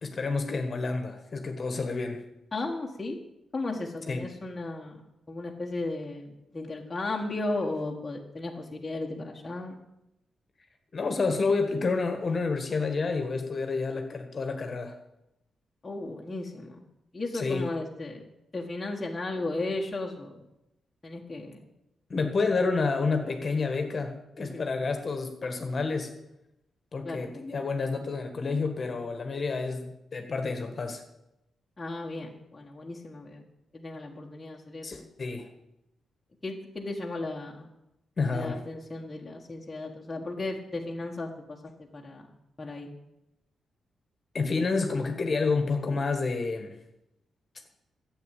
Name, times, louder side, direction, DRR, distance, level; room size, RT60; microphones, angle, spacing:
voice 1, 0.0-2.2 4.1-4.3 10.9-14.9 17.3-17.7 22.1-26.1 26.9-31.0 34.8-35.5 38.2-38.6 44.3-46.7, left 4 dB, 35° left, 6 dB, 1.6 m, -29 dB
voice 2, 2.5-3.2 3.5-5.0 5.3-9.7 15.8-16.8 17.1-18.3 18.5-20.4 21.0-21.6 24.4-24.7 27.0-27.3 31.8-33.5 33.7-35.1 36.4-37.7 38.3-42.2 42.6-42.9, left 2 dB, 15° left, -2 dB, 1.5 m, -35 dB
12.0 x 8.4 x 8.4 m, 0.88 s
wide cardioid pair, 165°, 0 cm